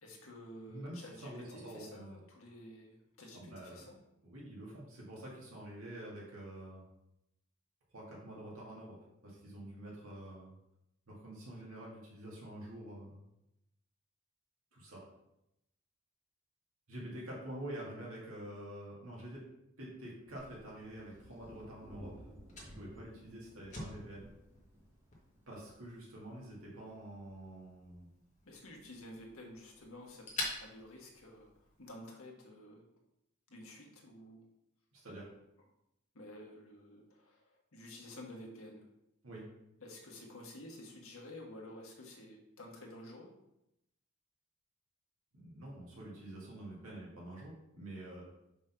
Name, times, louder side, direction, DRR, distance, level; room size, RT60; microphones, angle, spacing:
voice 1, 0.0-4.0 28.4-30.3 30.6-31.5 31.8-32.8 33.5-34.5 36.1-38.8 39.8-43.3, left 1 dB, 70° left, 0 dB, 1.4 m, -51 dB
voice 2, 0.7-2.2 3.3-3.8 4.2-6.8 7.9-9.0 9.2-10.5 11.1-13.2 14.7-15.0 16.9-19.5 19.8-22.3 22.7-24.3 25.5-28.1 34.9-35.3 39.2-39.5 45.3-48.2, right 1 dB, 70° right, -5 dB, 2.0 m, -47 dB
sound 1, 20.2-25.8, equal, 10° right, 0.9 m, -56 dB
Fire, 20.4-31.9, left 2 dB, 35° left, 1.6 m, -49 dB
5.2 x 3.8 x 5.7 m, 0.85 s
head